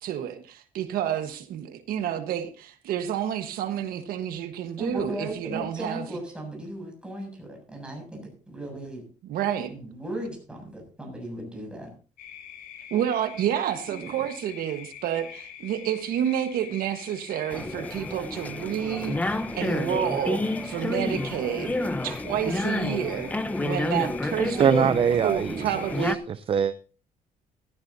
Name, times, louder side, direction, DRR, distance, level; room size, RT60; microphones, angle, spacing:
voice 1, 0.0-6.0 9.2-9.7 12.9-21.8 22.0-23.3 23.6-24.9 25.2-26.2, right 10 dB, 80° right, 8 dB, 1.4 m, -29 dB
voice 2, 4.8-9.0 9.7-11.9, right 1 dB, 5° right, 1 dB, 7.4 m, -36 dB
sound 1, 12.2-26.0, left 9 dB, 90° left, 4.1 m, -44 dB
sound 2, 17.5-26.2, left 2 dB, 10° left, 0.8 m, -30 dB
voice 3, 24.6-26.7, right 7 dB, 40° right, 14 dB, 0.6 m, -24 dB
15.0 x 15.0 x 2.8 m, 0.37 s
cardioid pair, 135°, 15 cm